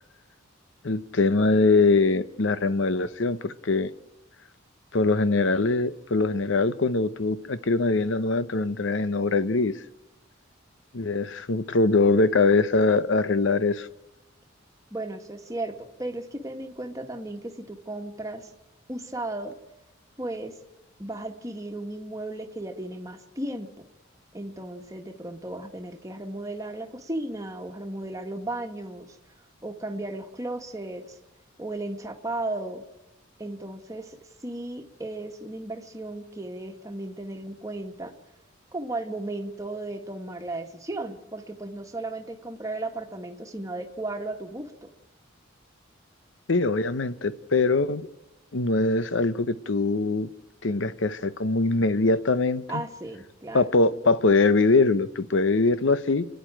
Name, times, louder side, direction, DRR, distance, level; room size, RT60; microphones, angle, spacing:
voice 1, 0.8-3.9 4.9-9.7 10.9-13.9 46.5-48.1 48.5-50.3 50.6-52.8 53.5-56.2, left 3 dB, 65° left, 15 dB, 0.8 m, -22 dB
voice 2, 14.9-18.5 18.9-19.5 20.2-20.6 21.0-23.8 24.3-29.2 29.6-31.2 31.6-32.8 33.4-34.2 34.4-38.1 38.7-44.9 52.7-53.6, right 2 dB, 15° right, 4 dB, 1.6 m, -35 dB
30.0 x 10.5 x 8.9 m, 1.0 s
head